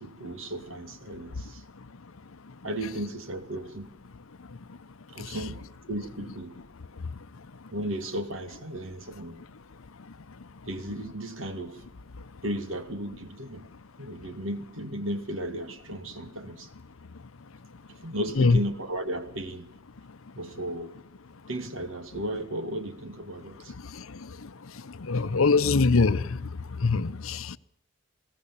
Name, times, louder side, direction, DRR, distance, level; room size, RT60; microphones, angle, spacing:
voice 1, 0.0-1.6 2.6-3.9 5.1-6.5 7.7-9.4 10.7-11.8 12.4-13.7 14.0-16.7 17.9-19.7 20.4-20.9 21.5-23.7, right 1 dB, 70° right, 2.2 m, -35 dB
voice 2, 25.0-26.5 26.8-27.6, left 4 dB, 80° left, 0.8 m, -23 dB
21.5 x 17.5 x 7.2 m
head